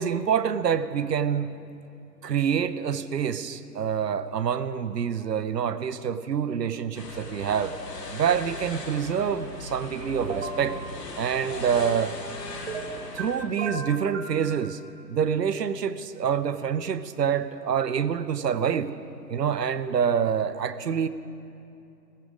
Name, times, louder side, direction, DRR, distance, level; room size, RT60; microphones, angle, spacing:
voice 1, 0.0-1.6 2.2-7.8 8.1-10.8 11.2-12.2 13.1-14.8 15.1-18.9 19.3-21.1, right 7 dB, 75° right, 14 dB, 0.9 m, -26 dB
sound 1, 7.0-13.4, left 2 dB, 75° left, 2.8 m, -38 dB
sound 2, 10.3-10.6 12.7-13.3 13.6-14.4, right 4 dB, 40° right, 1.7 m, -33 dB
15.5 x 15.5 x 5.1 m, 2.7 s
hypercardioid pair, 150°, 50 cm